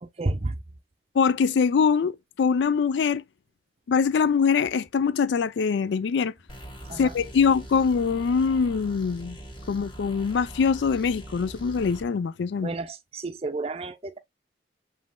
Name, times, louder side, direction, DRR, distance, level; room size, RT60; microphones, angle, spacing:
voice 1, 0.0-0.5 6.9-7.1 12.6-14.2, right 2 dB, 35° right, 0.5 m, -31 dB
voice 2, 1.1-3.2 3.9-6.3 6.9-9.4 9.7-12.7, left 6 dB, 80° left, 0.4 m, -23 dB
sound 1, 6.5-12.1, right 1 dB, 25° left, 1.3 m, -42 dB
7.4 x 3.2 x 2.2 m
head